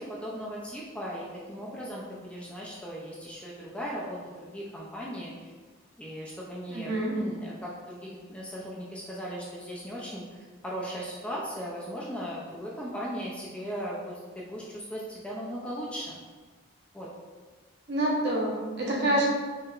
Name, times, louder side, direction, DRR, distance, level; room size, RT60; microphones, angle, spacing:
voice 1, 0.0-4.2 4.5-5.5 6.0-16.2 16.9-17.1 18.8-19.2, equal, 5° left, -5 dB, 0.4 m, -38 dB
voice 2, 6.7-7.2 17.9-19.2, right 1 dB, 50° right, -4 dB, 0.9 m, -27 dB
4.6 x 3.3 x 2.4 m, 1.4 s
head